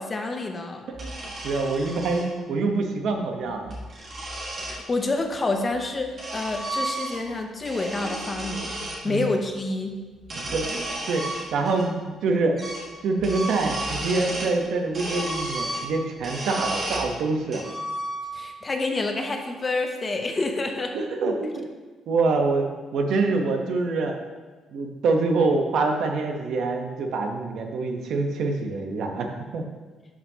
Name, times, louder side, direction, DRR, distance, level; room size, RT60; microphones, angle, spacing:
voice 1, 0.0-0.8 4.6-9.9 18.3-20.9, left 2 dB, 20° left, 4 dB, 0.5 m, -28 dB
sound 1, 0.9-2.3 3.5-4.8 5.7-7.3 7.6-9.0 10.2-11.9 12.1-12.2 12.6-12.9 13.2-14.6 14.9-17.1 17.5-18.5, right 1 dB, 30° right, 1.5 m, -33 dB
voice 2, 0.9-3.7 9.0-9.3 10.4-12.6 13.0-17.6 20.9-21.8 22.1-22.7 22.9-24.2 24.7-29.6, right 3 dB, 60° right, 4 dB, 0.8 m, -25 dB
11.0 x 4.9 x 2.7 m, 1.3 s
cardioid pair, 180°, 0 cm